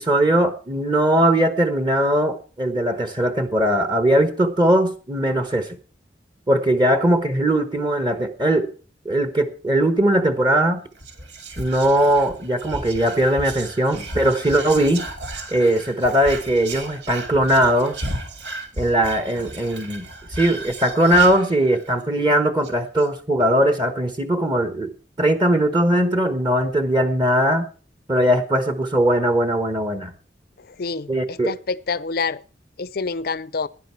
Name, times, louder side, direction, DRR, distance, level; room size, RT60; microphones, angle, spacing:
voice 1, 0.0-5.8 6.5-8.7 9.0-10.8 11.6-15.0 15.5-18.0 18.8-20.0 20.3-24.9 25.2-27.7 28.1-30.1 31.1-31.6, right 1 dB, 25° right, 1.1 m, -19 dB
Whispering, 11.0-22.0 22.3-22.4 22.6-23.1, right 2 dB, 80° right, 2.5 m, -34 dB
voice 2, 30.7-32.4 32.8-33.7, left 4 dB, 60° left, 0.6 m, -27 dB
16.5 x 10.5 x 4.6 m
head